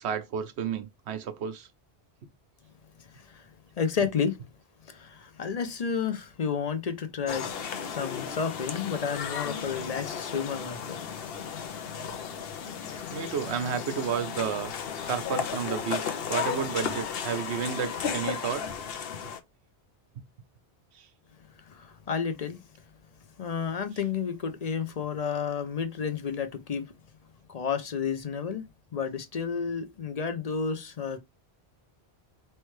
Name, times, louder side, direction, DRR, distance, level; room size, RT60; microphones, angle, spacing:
voice 1, 0.0-1.7 13.1-14.7 15.0-18.7 20.9-21.1, right 7 dB, 85° right, 1.0 m, -32 dB
voice 2, 3.0-3.5 3.8-4.4 4.9-11.0 21.7-22.6 23.4-26.9 27.5-28.6 28.9-31.2, left 6 dB, 45° left, 0.6 m, -31 dB
sound 1, 7.3-19.4, left 7 dB, 70° left, 0.9 m, -34 dB
4.3 x 3.2 x 3.1 m
omnidirectional pair, 1.1 m